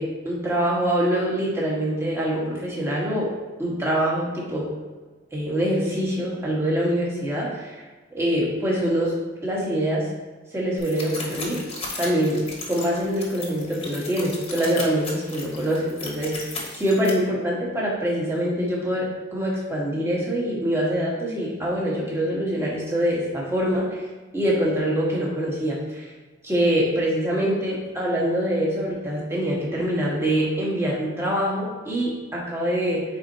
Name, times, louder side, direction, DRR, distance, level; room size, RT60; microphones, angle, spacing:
voice 1, 0.0-3.3 3.6-4.7 5.3-7.8 8.1-9.1 9.4-10.1 10.5-11.6 12.0-12.4 12.7-24.0 24.3-26.1 26.4-33.0, equal, 15° right, -5 dB, 1.5 m, -24 dB
sound 1, 10.8-17.1, left 3 dB, 30° left, 1.1 m, -36 dB
8.5 x 4.3 x 2.8 m, 1.3 s
head